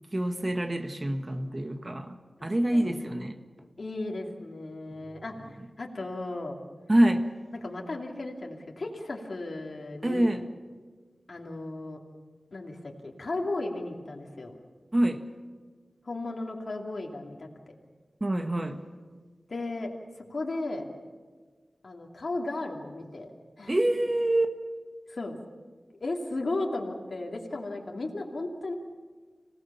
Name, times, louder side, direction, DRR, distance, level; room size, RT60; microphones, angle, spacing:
voice 1, 0.1-2.2 2.4-3.4 5.0-5.1 6.9-7.3 10.0-10.4 14.9-15.2 18.2-18.8 23.7-24.5, right 1 dB, 35° right, 7 dB, 1.7 m, -26 dB
voice 2, 2.4-3.1 3.8-6.6 7.5-10.3 11.3-12.0 12.5-14.5 16.0-17.5 19.5-19.9 20.3-20.9 21.8-23.7 25.1-25.4 26.0-28.7, left 2 dB, 65° left, 0 dB, 2.8 m, -35 dB
26.5 x 18.0 x 7.2 m, 1.5 s
wide cardioid pair, 60°, 0 cm